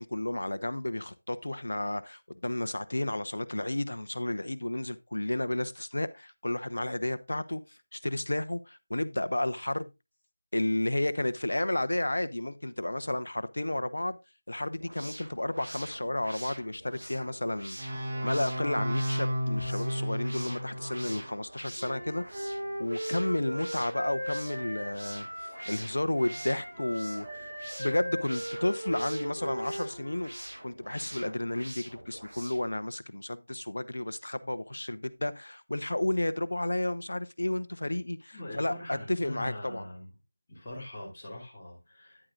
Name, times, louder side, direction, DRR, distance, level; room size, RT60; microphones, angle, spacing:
voice 1, 0.0-9.9 10.5-14.2 14.5-17.8 18.2-27.5 27.8-30.3 30.6-39.9, left 1 dB, 70° left, 0.8 m, -32 dB
sound 1, 14.7-32.8, right 1 dB, 75° right, 2.3 m, -46 dB
sound 2, 17.8-21.4, equal, 35° right, 2.2 m, -32 dB
Wind instrument woodwind instrument, 21.7-25.8 26.1-30.4, equal, 15° right, 5.7 m, -38 dB
voice 2, 38.3-40.1 40.5-42.3, left 1 dB, 15° left, 2.8 m, -42 dB
10.0 x 8.8 x 2.5 m
figure-of-eight pair, 170°, 0 cm